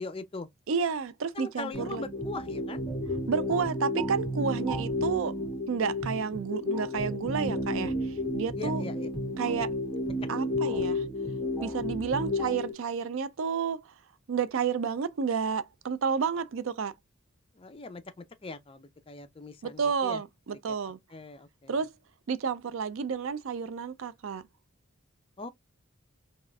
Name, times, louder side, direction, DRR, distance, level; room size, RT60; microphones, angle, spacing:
voice 1, 0.0-0.5 1.4-2.8 8.6-9.1 17.6-20.2 20.7-20.8 21.1-21.8 25.4-25.5, left 3 dB, 25° left, 0.4 m, -40 dB
voice 2, 0.7-2.1 3.3-5.4 5.7-7.9 8.3-8.8 9.4-9.7 10.3-11.0 11.6-13.8 14.3-16.9 19.6-21.0 21.7-21.9 22.3-24.4, right 6 dB, 70° right, 0.4 m, -30 dB
sound 1, 1.7-12.7, left 1 dB, 5° left, 1.6 m, -32 dB
4.0 x 2.4 x 2.3 m
head